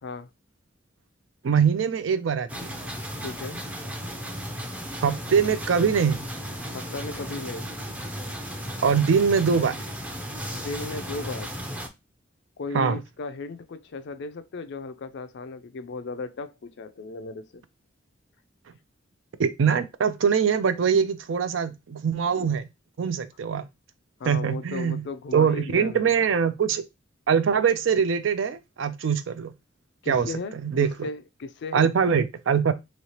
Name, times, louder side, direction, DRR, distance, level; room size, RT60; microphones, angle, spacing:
voice 1, 1.4-2.7 5.0-6.2 8.8-9.8 12.7-13.0 19.4-22.7 23.0-23.6 24.3-25.0 25.3-26.8 27.3-29.5 30.1-30.3 30.6-30.9 31.7-32.7, right 6 dB, 75° right, 0.4 m, -23 dB
sound 1, 2.5-11.9, equal, 5° right, 0.5 m, -35 dB
voice 2, 3.2-3.6 6.7-7.7 10.5-11.5 12.6-17.6 24.2-26.1 30.0-31.9, left 3 dB, 65° left, 0.4 m, -36 dB
3.1 x 2.8 x 2.8 m
head